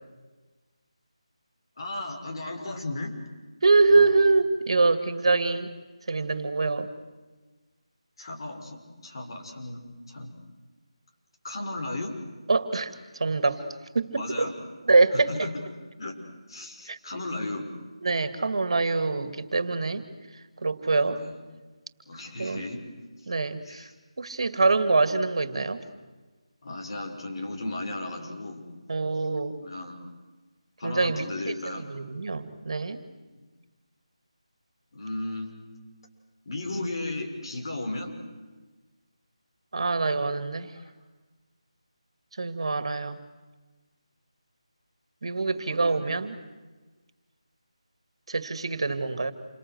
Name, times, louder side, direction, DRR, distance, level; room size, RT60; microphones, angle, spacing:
voice 1, 1.8-3.1 3.9-4.1 5.3-5.4 8.2-10.3 11.4-12.1 14.2-14.5 15.3-15.5 16.0-16.2 16.5-17.7 20.9-21.4 22.1-22.8 23.6-23.9 26.6-28.6 29.6-29.9 30.8-31.8 33.4-33.5 34.9-35.5 36.4-38.2 40.8-40.9 45.5-46.1, left 2 dB, 50° left, 3 dB, 6.3 m, -35 dB
voice 2, 3.6-5.7 6.1-6.9 12.5-13.6 13.9-14.5 14.9-15.5 16.9-17.0 18.0-20.1 20.6-21.2 22.4-22.6 23.3-23.9 24.2-25.8 28.9-29.6 30.8-33.0 39.7-40.7 42.4-43.2 45.2-46.4 48.3-49.3, right 3 dB, 55° right, 11 dB, 2.4 m, -24 dB
28.5 x 25.0 x 8.1 m, 1.2 s
figure-of-eight pair, 165°, 3 cm